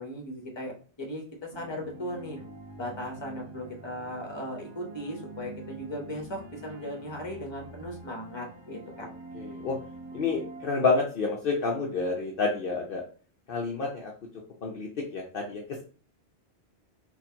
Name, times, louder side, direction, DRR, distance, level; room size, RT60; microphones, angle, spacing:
voice 1, 0.0-2.4 2.8-9.1, equal, 25° left, 1 dB, 0.9 m, -37 dB
sound 1, 1.5-10.7, right 2 dB, 45° right, 1.0 m, -45 dB
voice 2, 9.0-9.7 10.1-13.0 13.5-14.1 14.6-15.8, left 4 dB, 60° left, -1 dB, 0.7 m, -29 dB
4.1 x 2.5 x 2.7 m, 0.40 s
omnidirectional pair, 1.1 m